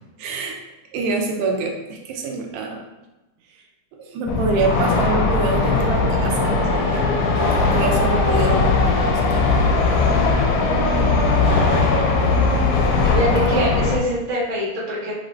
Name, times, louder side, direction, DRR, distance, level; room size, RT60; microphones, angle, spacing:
voice 1, 0.2-0.6 0.9-2.8 4.0-7.1 7.6-9.5 13.5-13.7, right 3 dB, 80° right, 2 dB, 1.9 m, -26 dB
sound 1, 4.3-14.0, left 3 dB, 85° left, 2.1 m, -19 dB
voice 2, 10.8-12.3 13.0-15.1, equal, 45° right, -7 dB, 0.9 m, -26 dB
5.8 x 2.5 x 3.2 m, 1.0 s
omnidirectional pair, 3.4 m